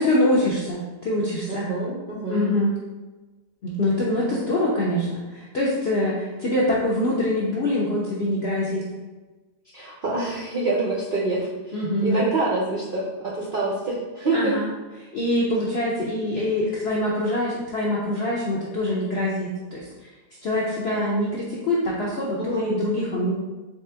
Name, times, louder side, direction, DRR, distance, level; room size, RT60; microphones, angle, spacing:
voice 1, 0.0-1.6 2.3-2.7 3.6-5.1 5.5-8.8 11.7-12.2 14.3-14.6 15.1-19.8 20.4-23.3, left 1 dB, 75° left, -5 dB, 0.5 m, -24 dB
voice 2, 1.5-2.5 3.9-4.4 9.7-14.5 22.4-22.7, right 2 dB, 80° right, -5 dB, 0.4 m, -27 dB
4.1 x 2.9 x 3.3 m, 1.2 s
omnidirectional pair, 1.8 m